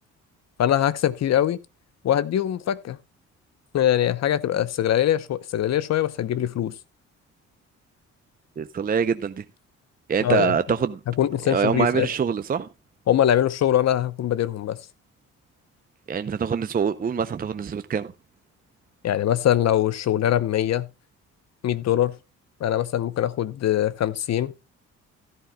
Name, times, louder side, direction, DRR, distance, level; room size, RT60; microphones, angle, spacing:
voice 1, 0.6-1.6 2.0-3.0 3.7-6.7 10.2-10.5 11.1-12.1 13.1-14.8 19.0-20.9 21.6-22.2 22.6-24.5, left 11 dB, 60° left, 0.8 m, -22 dB
voice 2, 8.6-9.4 10.1-11.0 11.4-12.7 16.1-18.1, right 6 dB, 30° right, 0.6 m, -24 dB
15.5 x 11.0 x 2.3 m
cardioid pair, 90°, 30 cm